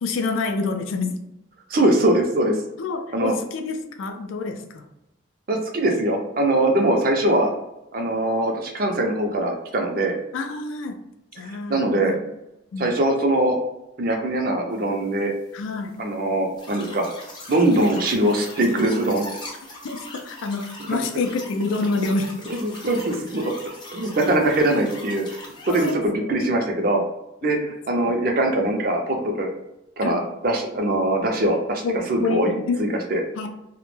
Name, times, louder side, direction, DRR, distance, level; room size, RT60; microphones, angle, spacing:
voice 1, 0.0-1.2 2.8-4.9 6.9-7.0 10.3-11.0 11.3-12.2 12.7-13.0 15.5-16.0 19.8-22.4 25.7-26.0 26.3-26.4 27.4-27.5 30.0-30.3 31.2-31.3 31.8-32.9 33.4-33.5, left 3 dB, 90° left, 5 dB, 0.4 m, -27 dB
voice 2, 1.7-2.6 3.1-3.3 5.5-7.5 7.9-10.2 11.5-12.1 12.8-13.6 14.0-15.3 16.0-17.0 17.5-19.2 22.6-23.5 23.9-25.4 25.7-27.0 27.4-29.5 30.0-31.8 32.1-32.5 32.8-33.2, right 1 dB, 45° right, 2 dB, 0.4 m, -22 dB
sound 1, 16.6-25.9, left 1 dB, 25° left, 0.4 m, -40 dB
2.1 x 2.1 x 3.1 m, 0.88 s
head